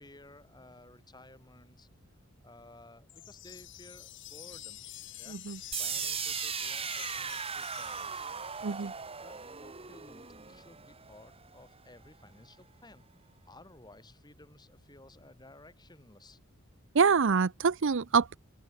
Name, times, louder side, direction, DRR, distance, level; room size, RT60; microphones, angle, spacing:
voice 1, 0.0-1.9 2.4-4.8 5.2-8.3 8.7-13.0 13.5-16.4, left 2 dB, 20° left, 4.5 m, -56 dB
sound 1, 3.1-8.6, left 14 dB, 60° left, 3.7 m, -47 dB
sound 2, 5.7-11.6, right 7 dB, 25° right, 2.0 m, -38 dB
voice 2, 16.9-18.4, right 5 dB, 60° right, 0.6 m, -25 dB
open air
head